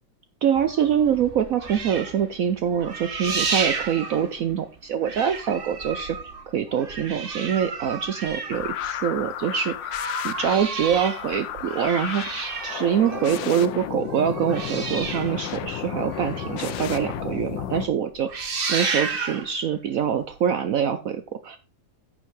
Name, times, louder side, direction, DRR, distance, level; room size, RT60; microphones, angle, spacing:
voice 1, 0.4-6.2 6.5-18.3 18.7-21.6, right 8 dB, 75° right, 10 dB, 0.7 m, -25 dB
sound 1, 0.6-4.8 5.0-9.3 9.7-16.8 17.2-17.3 17.6-17.9 18.1-19.5 20.3-20.4, right 4 dB, 40° right, 0.9 m, -32 dB
sound 2, 8.5-17.9, left 10 dB, 75° left, 1.3 m, -32 dB
10.5 x 6.8 x 3.1 m, 0.31 s
omnidirectional pair, 2.1 m